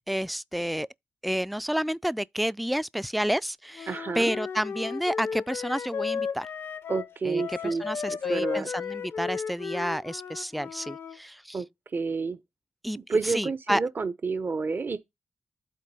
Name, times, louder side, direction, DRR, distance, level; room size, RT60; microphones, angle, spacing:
voice 1, 0.1-0.9 1.2-6.5 7.2-11.6 12.8-13.0 13.2-13.8, equal, ahead, 0.3 m, -30 dB
Wind instrument woodwind instrument, 3.8-11.2, left 6 dB, 75° left, 0.6 m, -34 dB
voice 2, 3.9-4.3 6.9-8.7 11.5-11.7 11.9-12.4 13.1-15.0, right 4 dB, 55° right, 0.7 m, -29 dB
8.3 x 2.8 x 5.3 m
supercardioid pair, 40°, 4 cm